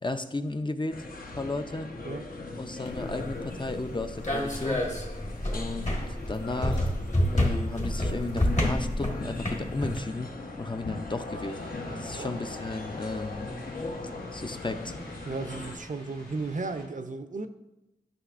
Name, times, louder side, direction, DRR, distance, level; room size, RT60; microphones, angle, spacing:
voice 1, 0.0-1.1 1.3-1.9 2.6-4.8 5.5-6.9 7.3-11.6 12.0-13.5 14.3-14.9, left 2 dB, 30° left, 8 dB, 0.5 m, -34 dB
sound 1, 0.9-15.8, left 2 dB, 65° left, 0.9 m, -39 dB
sound 2, 2.8-10.0, left 1 dB, 45° left, 1.6 m, -29 dB
sound 3, 11.3-16.9, left 1 dB, 90° left, 2.4 m, -50 dB
voice 2, 11.9-12.4 15.3-17.5, right 3 dB, 55° right, 8 dB, 0.5 m, -35 dB
11.5 x 6.0 x 2.5 m, 0.95 s
wide cardioid pair, 75°, 16 cm